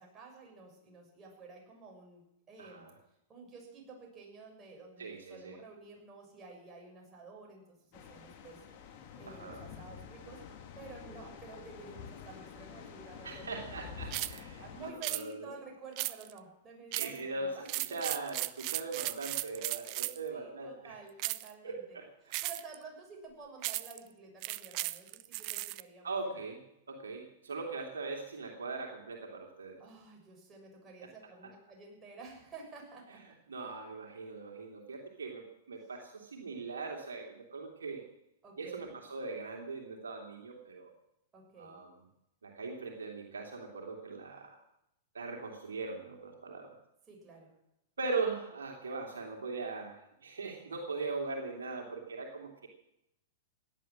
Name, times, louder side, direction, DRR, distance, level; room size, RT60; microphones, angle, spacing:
voice 1, 0.0-2.2 2.5-2.9 3.3-8.6 9.2-10.4 10.8-14.0 14.6-18.2 19.9-20.0 20.3-22.0 22.2-26.3 29.8-33.2 35.8-35.9 38.4-39.0 41.3-41.8 47.1-47.5, right 3 dB, 20° right, 0 dB, 6.9 m, -51 dB
voice 2, 2.6-2.9 5.0-5.5 9.3-9.6 13.2-15.5 16.9-17.5 17.9-20.9 21.6-22.4 26.0-26.6 26.9-29.8 33.5-38.0 38.6-40.9 41.6-41.9 42.4-44.6 45.1-46.8 48.0-52.7, right 3 dB, 75° right, 0 dB, 3.0 m, -40 dB
sound 1, 7.9-14.9, left 7 dB, 50° left, 2.9 m, -48 dB
sound 2, 14.1-14.4 15.0-15.2 16.0-16.4 16.9-17.2 17.6-20.3 21.2-21.5 22.3-22.7 23.6-24.0 24.4-25.8, right 19 dB, 45° right, 0.6 m, -36 dB
17.0 x 10.5 x 7.6 m, 0.82 s
hypercardioid pair, 105°, 0 cm